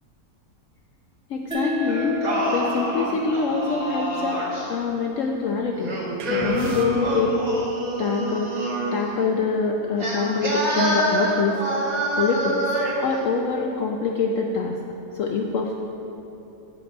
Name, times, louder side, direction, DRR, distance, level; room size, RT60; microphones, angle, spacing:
voice 1, 1.3-2.2 2.5-4.4 4.7-5.9 6.3-7.4 8.0-11.6 12.2-12.6 13.0-14.8 15.1-15.7, left 4 dB, 65° left, 1 dB, 0.8 m, -25 dB
sound 1, 1.5-4.7, left 5 dB, 5° right, 0.8 m, -31 dB
Singing, 1.9-4.7 5.8-9.0 10.0-13.1, right 1 dB, 25° right, 1.7 m, -26 dB
sound 2, 6.2-7.4, right 3 dB, 80° right, 1.4 m, -33 dB
9.3 x 5.9 x 5.1 m, 2.9 s
omnidirectional pair, 1.7 m